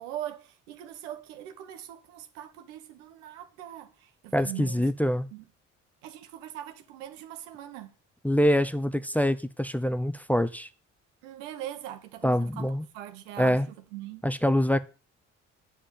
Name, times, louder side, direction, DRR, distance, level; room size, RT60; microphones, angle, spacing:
voice 1, 0.0-4.9 5.3-5.4 6.0-7.9 11.2-13.6 13.9-14.3, right 12 dB, 85° right, 1.2 m, -41 dB
voice 2, 4.3-5.3 8.2-10.7 12.2-12.8 13.4-13.7 14.2-14.8, equal, 5° left, 0.8 m, -25 dB
9.6 x 5.1 x 7.1 m
hypercardioid pair, 50°, 36 cm